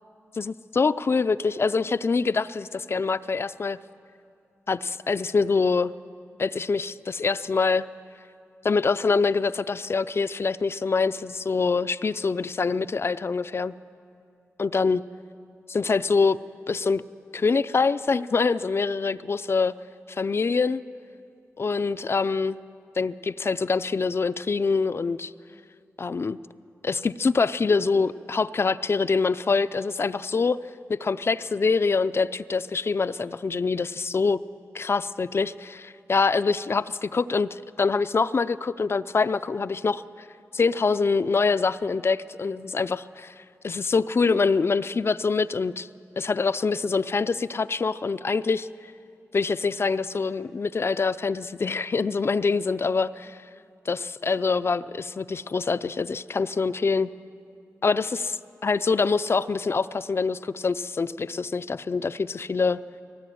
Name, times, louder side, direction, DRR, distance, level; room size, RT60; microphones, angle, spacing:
voice 1, 0.3-3.8 4.7-5.9 6.4-7.9 8.6-13.7 14.6-15.0 15.7-16.4 16.7-17.0 17.3-19.8 20.1-20.8 21.6-22.6 23.0-25.3 26.0-26.4 26.8-30.6 30.9-34.4 34.7-40.3 40.5-43.3 43.6-45.9 46.2-48.7 49.3-53.4 53.9-57.1 57.8-62.8, left 4 dB, 50° left, 13 dB, 0.5 m, -25 dB
19.0 x 18.0 x 9.2 m, 2.5 s
wide cardioid pair, 75°, 5 cm